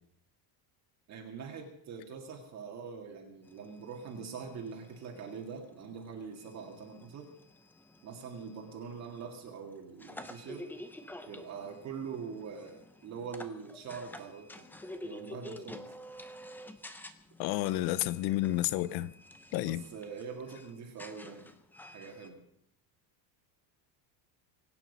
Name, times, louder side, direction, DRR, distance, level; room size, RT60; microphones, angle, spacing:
voice 1, 1.1-7.3 8.0-10.7 11.3-14.7 15.0-15.9 19.7-21.5 21.9-22.4, right 6 dB, 35° right, 2.0 m, -43 dB
sound 1, 3.4-22.3, left 1 dB, 5° left, 0.6 m, -50 dB
voice 2, 17.4-19.1 19.5-19.8, left 15 dB, 55° left, 0.8 m, -30 dB
23.5 x 9.3 x 5.4 m
cardioid pair, 170°, 46 cm